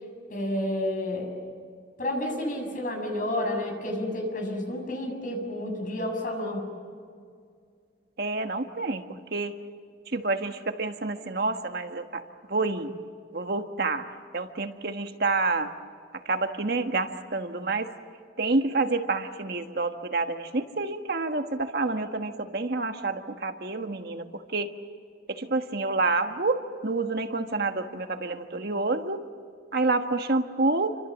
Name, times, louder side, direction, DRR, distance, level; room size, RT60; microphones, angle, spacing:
voice 1, 0.3-1.3 2.0-6.7, left 1 dB, 50° left, 3 dB, 7.1 m, -30 dB
voice 2, 8.2-9.0 9.3-9.6 10.1-12.2 12.5-12.9 13.3-14.1 14.3-15.7 16.2-17.9 18.4-24.7 25.3-29.2 29.7-31.0, right 3 dB, 60° right, 6 dB, 1.5 m, -28 dB
29.0 x 25.5 x 7.3 m, 2.2 s
head